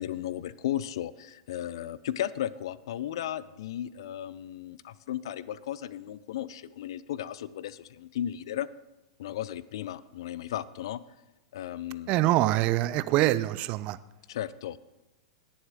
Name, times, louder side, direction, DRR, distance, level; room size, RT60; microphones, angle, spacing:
voice 1, 0.0-8.7 9.2-11.0 11.5-12.3 14.3-14.8, left 11 dB, 65° left, 18 dB, 0.4 m, -35 dB
voice 2, 12.1-14.0, right 16 dB, 45° right, 16 dB, 0.5 m, -24 dB
17.5 x 7.1 x 3.6 m, 1.0 s
figure-of-eight pair, 95°, 3 cm